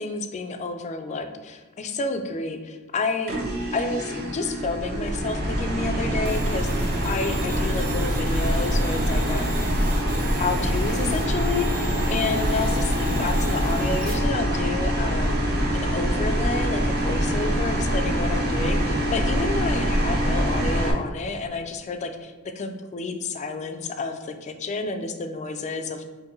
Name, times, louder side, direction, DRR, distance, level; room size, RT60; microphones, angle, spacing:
voice 1, 0.0-3.3 3.7-9.5 10.4-15.3 15.7-26.0, left 3 dB, 30° left, 7 dB, 0.3 m, -30 dB
sound 1, 3.3-20.9, equal, 45° right, 0.6 m, -24 dB
sound 2, 6.3-14.1, right 4 dB, 85° right, 0.8 m, -40 dB
4.5 x 2.6 x 3.0 m, 1.3 s
head